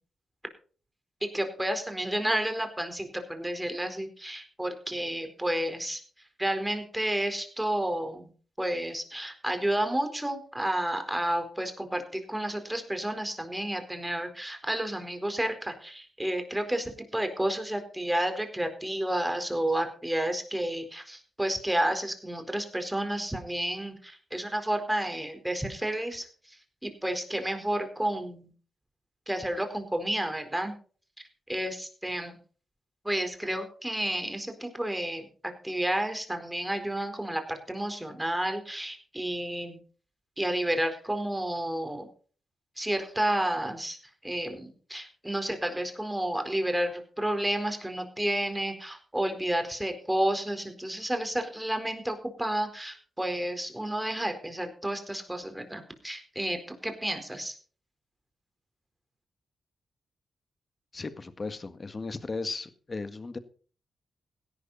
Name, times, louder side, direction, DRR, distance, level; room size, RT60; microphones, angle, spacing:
voice 1, 1.3-6.0 6.4-8.3 8.6-26.6 26.8-28.5 29.3-30.7 31.5-32.4 33.0-39.8 40.4-42.1 42.8-44.0 44.2-57.6, right 1 dB, 10° right, 6 dB, 4.4 m, -31 dB
voice 2, 60.9-63.4, left 3 dB, 45° left, 11 dB, 1.9 m, -36 dB
16.5 x 11.0 x 4.2 m, 0.41 s
supercardioid pair, 45°, 0 cm